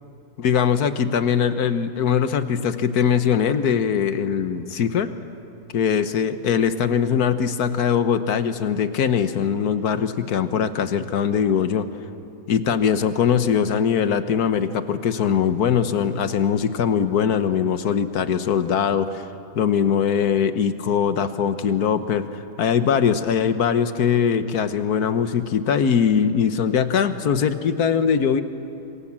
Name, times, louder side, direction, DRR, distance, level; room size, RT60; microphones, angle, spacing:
voice 1, 0.4-5.1 5.7-11.9 12.5-19.2 19.5-28.4, left 7 dB, 85° left, 11 dB, 1.6 m, -21 dB
26.5 x 23.0 x 7.4 m, 2.8 s
omnidirectional pair, 1.6 m